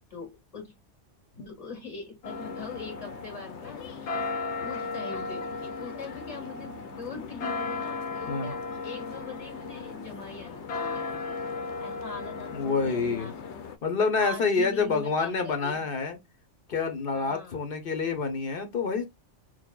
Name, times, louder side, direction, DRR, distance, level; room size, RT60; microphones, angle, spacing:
voice 1, 0.1-0.8 1.4-11.3 11.8-13.4 14.2-15.8 17.1-17.6, left 4 dB, 30° left, 2.0 m, -42 dB
sound 1, 2.2-13.8, left 4 dB, 70° left, 0.9 m, -36 dB
voice 2, 12.5-13.3 13.8-16.2 16.7-19.0, left 4 dB, 50° left, 1.1 m, -27 dB
6.4 x 2.2 x 2.3 m
omnidirectional pair, 1.2 m